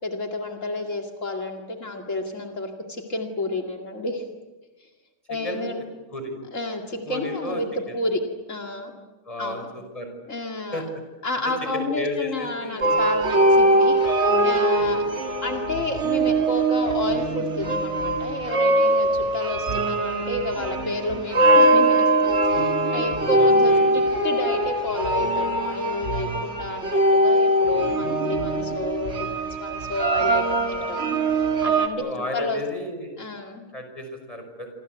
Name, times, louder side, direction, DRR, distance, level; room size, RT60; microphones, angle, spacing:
voice 1, 0.0-4.2 4.8-4.9 5.3-5.8 6.5-8.2 8.5-8.9 9.4-9.7 10.3-10.8 11.2-15.0 15.4-32.1 32.3-32.6 33.2-33.7, left 2 dB, 75° left, 2 dB, 2.7 m, -31 dB
voice 2, 5.3-5.7 6.1-6.3 7.0-7.6 7.9-8.0 9.3-10.1 10.7-10.8 11.7-12.9 14.7-15.0 23.3-23.9 27.6-28.3 32.0-33.1 33.7-34.7, left 2 dB, 25° left, 5 dB, 6.3 m, -33 dB
sound 1, 12.8-31.9, right 1 dB, 60° right, 2.4 m, -21 dB
28.0 x 26.0 x 8.1 m, 1.2 s
omnidirectional pair, 1.3 m